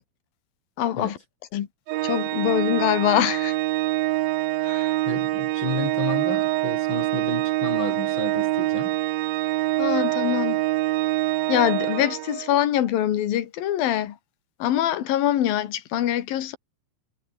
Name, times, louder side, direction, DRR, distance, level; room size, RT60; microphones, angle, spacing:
voice 1, 0.8-1.1 1.5-1.7 2.0-3.6 4.7-4.9 9.8-10.6 11.5-14.1 14.6-16.6, left 11 dB, 65° left, 3.4 m, -23 dB
Organ, 1.9-12.6, right 18 dB, 75° right, 2.3 m, -25 dB
voice 2, 5.0-9.0, left 3 dB, 30° left, 6.0 m, -32 dB
omnidirectional pair, 4.7 m